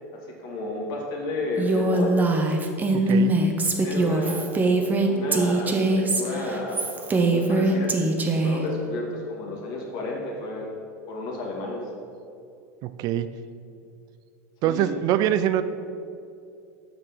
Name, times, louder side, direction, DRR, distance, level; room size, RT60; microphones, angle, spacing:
voice 1, 0.1-2.1 3.8-4.5 5.0-7.9 8.3-10.8 11.1-11.8 14.6-15.3, left 2 dB, 55° left, -1 dB, 2.1 m, -32 dB
Female speech woman speaking, 1.6-8.6, right 2 dB, 20° right, 0.9 m, -22 dB
voice 2, 2.9-3.4 12.8-13.3 14.6-15.6, right 11 dB, 50° right, 12 dB, 0.4 m, -24 dB
6.8 x 5.7 x 5.9 m, 2.6 s
supercardioid pair, 110°, 8 cm